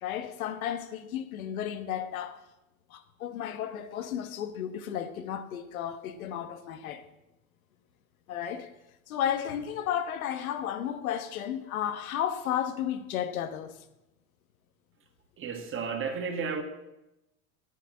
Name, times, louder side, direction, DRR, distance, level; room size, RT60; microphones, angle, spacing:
voice 1, 0.0-2.4 2.9-7.0 8.3-8.7 9.1-13.7, left 10 dB, 85° left, 1.3 m, -33 dB
voice 2, 15.4-16.6, right 5 dB, 30° right, 1.8 m, -32 dB
9.0 x 8.6 x 7.6 m
supercardioid pair, 115°, 41 cm